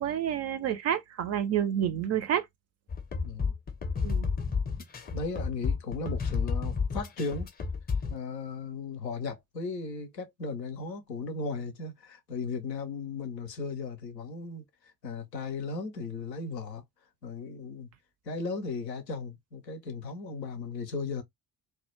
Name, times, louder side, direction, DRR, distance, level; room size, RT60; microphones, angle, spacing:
voice 1, 0.0-2.5 4.0-4.3, right 9 dB, 35° right, 0.4 m, -29 dB
sound 1, 2.9-8.2, left 5 dB, 20° left, 0.5 m, -31 dB
voice 2, 3.2-3.5 5.1-7.5 8.1-14.6 15.0-16.8 17.2-17.9 18.3-21.2, left 4 dB, 85° left, 0.6 m, -36 dB
2.2 x 2.1 x 2.9 m
figure-of-eight pair, 40°, 49 cm